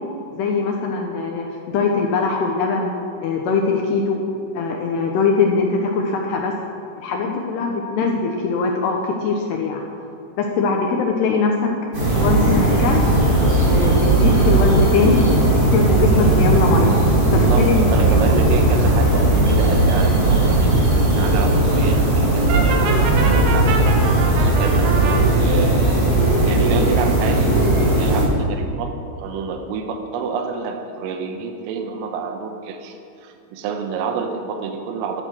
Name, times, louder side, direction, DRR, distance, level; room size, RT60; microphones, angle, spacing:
voice 1, 0.3-2.9 3.2-4.2 4.5-6.5 7.0-9.8 10.4-11.7 12.1-13.0 13.4-15.3 15.5-16.9 17.3-18.2, left 4 dB, 75° left, 1 dB, 2.5 m, -21 dB
sound 1, 11.9-28.3, right 2 dB, 30° right, 4.2 m, -17 dB
voice 2, 17.2-25.9 26.4-28.9 29.2-35.2, right 5 dB, 85° right, 5 dB, 3.6 m, -28 dB
Brass instrument, 22.5-25.2, right 4 dB, 70° right, 3.0 m, -26 dB
13.5 x 12.5 x 6.3 m, 2.5 s
omnidirectional pair, 5.9 m